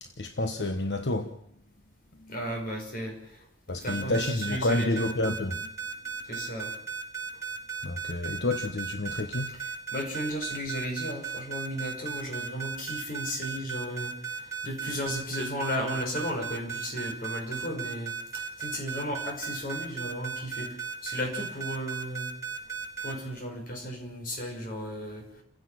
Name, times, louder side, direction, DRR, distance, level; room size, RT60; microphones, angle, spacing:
voice 1, 0.0-1.4 3.7-5.7 7.8-9.6, left 2 dB, 85° left, 1.2 m, -29 dB
voice 2, 2.3-3.5 3.8-5.2 6.2-6.7 9.5-22.3 23.0-25.3, equal, 55° left, 6.3 m, -35 dB
sound 1, 3.9-23.1, right 7 dB, 15° right, 5.3 m, -35 dB
29.5 x 16.0 x 6.0 m
head